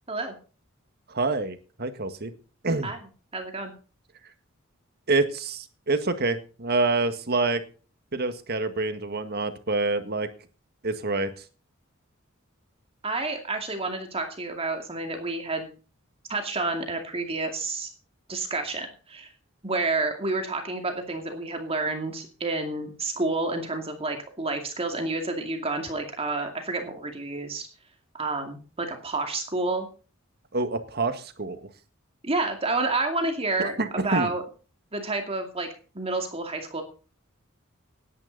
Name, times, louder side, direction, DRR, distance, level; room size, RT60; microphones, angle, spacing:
voice 1, 1.1-2.3 2.6-2.9 5.1-7.6 8.1-10.3 10.8-11.4 30.5-31.7 33.6-34.3, right 3 dB, 50° right, 9 dB, 1.8 m, -27 dB
voice 2, 3.3-3.7 13.0-15.7 16.3-17.9 18.3-19.3 19.6-27.7 28.1-29.9 32.2-34.4 34.9-35.7 35.9-36.8, right 3 dB, 30° right, 4 dB, 2.4 m, -29 dB
18.0 x 10.5 x 4.1 m, 0.36 s
head